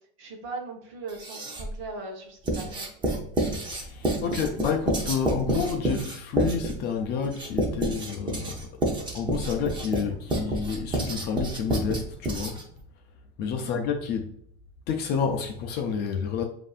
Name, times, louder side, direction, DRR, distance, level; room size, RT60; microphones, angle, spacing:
voice 1, 0.2-2.8 13.5-13.8, right 3 dB, 40° right, 1.0 m, -39 dB
Writing, 1.1-1.8 2.5-12.8, right 2 dB, 15° right, 0.7 m, -29 dB
voice 2, 3.4-8.7 9.1-12.6 13.4-14.3 14.9-16.4, left 6 dB, 35° left, 0.5 m, -29 dB
7.5 x 2.7 x 2.4 m
supercardioid pair, 160°, 30 cm